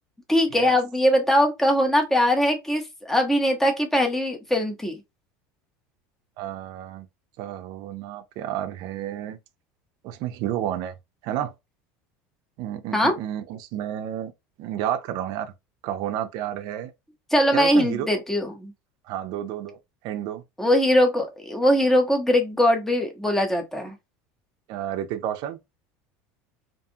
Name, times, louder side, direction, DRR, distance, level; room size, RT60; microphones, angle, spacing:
voice 1, 0.3-5.0 12.9-13.1 17.3-18.7 20.6-23.9, equal, 5° left, 0.7 m, -21 dB
voice 2, 6.4-7.1 7.4-9.4 10.0-10.9 11.2-11.5 12.6-14.3 14.6-15.5 15.8-16.9 17.5-18.1 19.1-19.8 20.0-20.4 24.7-25.6, right 11 dB, 60° right, 0.5 m, -30 dB
2.5 x 2.3 x 2.7 m
supercardioid pair, 115°, 8 cm